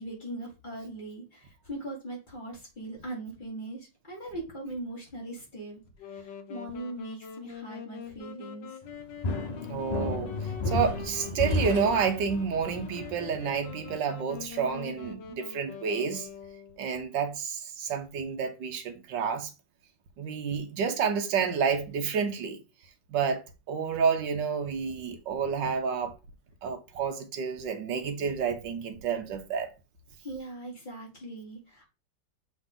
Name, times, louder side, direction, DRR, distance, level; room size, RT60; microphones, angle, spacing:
voice 1, 0.0-8.8 30.2-31.9, right 2 dB, 25° left, 3.1 m, -40 dB
Wind instrument woodwind instrument, 6.0-16.9, left 7 dB, 85° left, 1.5 m, -44 dB
sound 1, 8.9-13.9, left 2 dB, 65° left, 0.4 m, -33 dB
voice 2, 9.7-10.3 10.7-16.3 16.8-19.5 20.2-22.6 23.1-26.1 26.6-29.7, right 6 dB, 80° right, 1.7 m, -29 dB
7.2 x 4.0 x 3.8 m
omnidirectional pair, 1.9 m